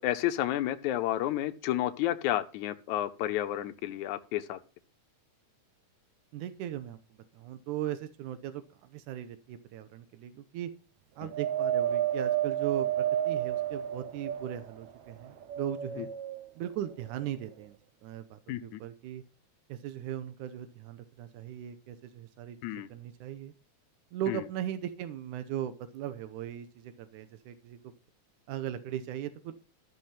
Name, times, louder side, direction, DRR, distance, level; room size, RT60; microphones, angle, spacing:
voice 1, 0.0-4.6 11.2-11.3 16.0-16.1 18.5-18.8 22.6-22.9 24.3-24.4, left 13 dB, 80° left, 2.1 m, -31 dB
voice 2, 6.3-7.0 7.3-10.7 11.2-16.1 16.6-19.2 19.7-22.6 22.9-23.5 24.1-27.8 28.5-29.5, right 11 dB, 90° right, 2.4 m, -38 dB
Wind, 11.3-14.8 15.4-16.4 17.2-17.3, right 11 dB, 70° right, 2.5 m, -31 dB
13.5 x 6.4 x 5.8 m
omnidirectional pair, 3.5 m